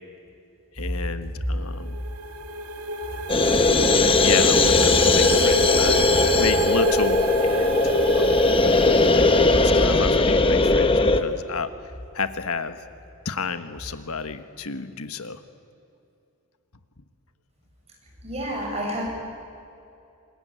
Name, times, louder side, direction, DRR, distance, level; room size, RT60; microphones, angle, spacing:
voice 1, 0.7-2.0 3.6-6.0 6.4-8.6 9.6-11.7 12.1-12.8 13.2-15.4, left 4 dB, 75° left, 10 dB, 1.4 m, -30 dB
sound 1, 1.6-10.3, right 1 dB, 90° right, 2.0 m, -28 dB
sound 2, 3.3-11.2, left 3 dB, 25° left, 1.1 m, -19 dB
voice 2, 18.2-19.1, equal, 30° right, -1 dB, 7.2 m, -29 dB
26.0 x 21.5 x 9.3 m, 2.6 s
head